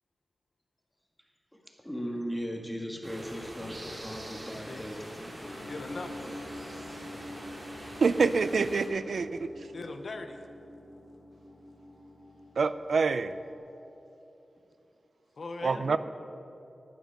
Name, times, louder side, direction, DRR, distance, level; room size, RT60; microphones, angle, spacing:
voice 1, 1.8-5.3 6.2-6.4 15.9-16.0, equal, 5° left, 1 dB, 1.7 m, -37 dB
sound 1, 3.0-8.9, right 1 dB, 35° right, 2.8 m, -44 dB
sound 2, 5.4-13.6, left 1 dB, 30° left, 2.7 m, -46 dB
voice 2, 5.6-6.3 9.7-10.5 15.4-16.0, left 3 dB, 65° left, 6 dB, 0.8 m, -40 dB
voice 3, 8.0-9.5 12.6-13.3 15.6-16.0, right 4 dB, 75° right, 13 dB, 0.4 m, -26 dB
11.0 x 9.3 x 5.8 m, 2.9 s
wide cardioid pair, 80°, 0 cm